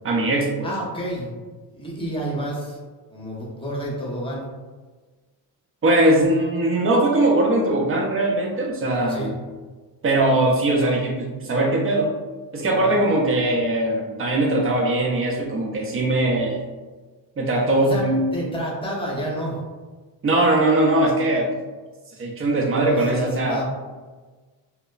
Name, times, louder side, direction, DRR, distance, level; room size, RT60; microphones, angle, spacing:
voice 1, 0.0-0.7 5.8-9.3 10.0-12.1 12.5-16.6 17.4-18.3 20.2-21.5 22.2-23.6, right 1 dB, 30° right, 0 dB, 0.6 m, -20 dB
voice 2, 0.6-1.3 1.7-2.8 3.1-4.4 8.9-9.3 12.7-13.0 17.8-18.0 18.3-19.6 22.5-23.6, right 1 dB, 10° left, -4 dB, 0.9 m, -29 dB
2.8 x 2.1 x 2.3 m, 1.3 s
supercardioid pair, 80°, 44 cm